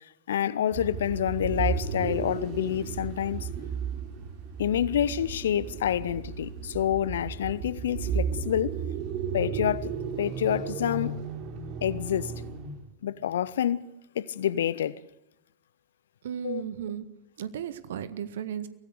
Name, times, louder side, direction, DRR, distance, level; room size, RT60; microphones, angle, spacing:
voice 1, 0.3-3.5 4.6-8.8 9.3-9.9 10.2-11.1 11.8-12.3 13.0-13.8 14.1-15.0 16.4-16.6, left 10 dB, 60° left, 0.9 m, -28 dB
sound 1, 0.7-12.9, right 6 dB, 40° right, 3.0 m, -34 dB
voice 2, 16.2-17.0 17.4-18.7, right 9 dB, 60° right, 1.7 m, -35 dB
23.5 x 18.0 x 6.6 m
figure-of-eight pair, 90°, 0 cm